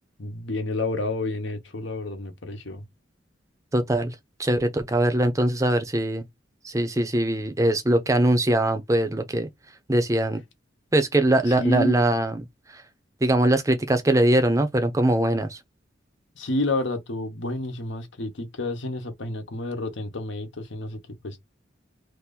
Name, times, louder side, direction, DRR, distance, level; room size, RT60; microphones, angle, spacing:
voice 1, 0.2-2.8 11.5-12.0 16.4-21.0 21.2-21.4, left 2 dB, 75° left, 0.9 m, -29 dB
voice 2, 3.7-4.1 4.4-6.2 6.6-9.5 9.9-10.4 10.9-12.5 12.7-12.8 13.2-15.6, right 1 dB, 15° right, 0.6 m, -22 dB
2.9 x 2.5 x 3.6 m
head